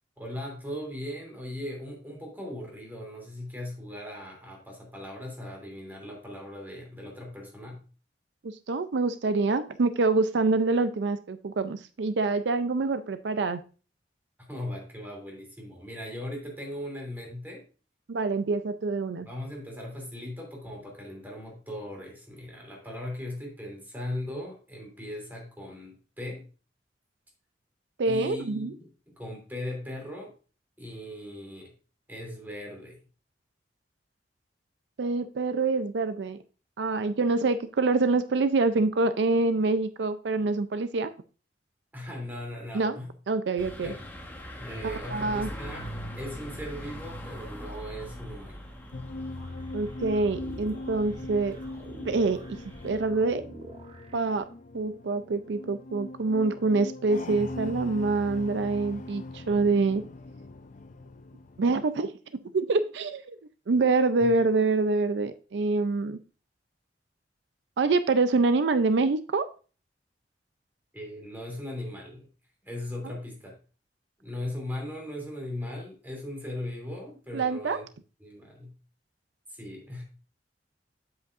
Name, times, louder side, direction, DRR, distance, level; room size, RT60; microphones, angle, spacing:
voice 1, 0.2-7.8 14.5-17.6 19.2-26.5 28.1-30.3 30.8-31.7 32.1-33.0 41.9-43.1 43.8-44.0 44.6-45.9 46.2-48.6 64.2-64.3 70.9-72.3 72.6-73.5 74.2-77.8 78.2-78.7 79.5-80.0, left 1 dB, 10° right, 0 dB, 2.9 m, -38 dB
voice 2, 8.4-13.6 18.1-19.3 28.0-28.7 35.0-36.4 36.8-41.1 42.7-43.0 43.3-43.9 45.1-45.5 49.7-51.6 52.0-53.5 54.1-54.5 54.7-60.0 61.6-62.1 62.5-63.4 63.7-66.2 67.8-69.5 73.0-73.1 77.3-77.8, right 3 dB, 80° right, 12 dB, 0.5 m, -26 dB
sound 1, 43.6-53.0, equal, 10° left, 1.3 m, -42 dB
sound 2, 48.9-61.7, left 2 dB, 45° left, 0.5 m, -40 dB
sound 3, 49.4-54.4, right 1 dB, 35° right, 0.8 m, -48 dB
8.1 x 7.8 x 2.5 m, 0.36 s
head